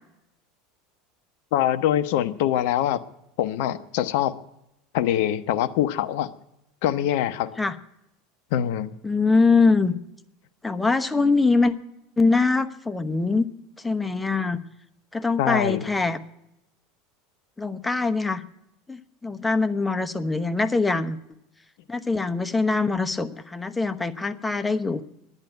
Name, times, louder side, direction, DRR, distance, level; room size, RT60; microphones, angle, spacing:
voice 1, 1.5-3.0 3.4-4.4 4.9-6.3 6.8-7.5 8.5-8.9 15.4-15.8, left 11 dB, 60° left, 13 dB, 0.8 m, -24 dB
voice 2, 9.0-9.9 10.6-11.7 12.2-13.5 13.8-14.6 15.1-16.2 17.6-18.4 18.9-21.2 21.9-25.0, left 3 dB, 10° left, 10 dB, 0.9 m, -23 dB
11.0 x 9.8 x 9.0 m, 0.84 s
figure-of-eight pair, 75°, 0 cm